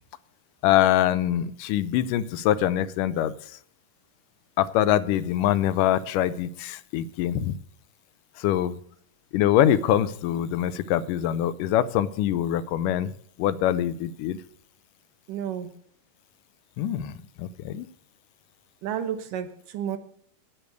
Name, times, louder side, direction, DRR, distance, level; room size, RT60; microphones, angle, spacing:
voice 1, 0.6-3.6 4.6-7.6 8.4-8.8 9.3-13.1 13.4-14.4 16.8-17.9, left 11 dB, 80° left, 15 dB, 2.2 m, -24 dB
voice 2, 15.3-15.7 18.8-20.0, right 9 dB, 75° right, 10 dB, 2.7 m, -31 dB
10.5 x 8.8 x 8.0 m, 0.63 s
omnidirectional pair, 3.8 m